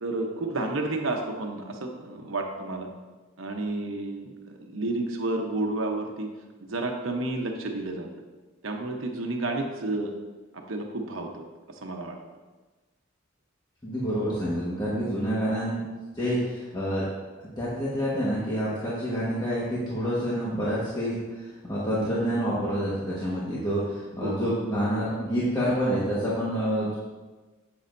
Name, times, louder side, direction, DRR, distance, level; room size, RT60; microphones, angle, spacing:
voice 1, 0.0-2.9 3.4-6.3 6.6-8.1 8.6-10.1 10.5-12.2 24.2-24.5, right 2 dB, 90° right, 3 dB, 1.0 m, -31 dB
voice 2, 13.8-15.8 16.1-17.0 17.4-27.0, equal, 20° left, -8 dB, 1.5 m, -28 dB
9.7 x 7.7 x 2.7 m, 1.3 s
head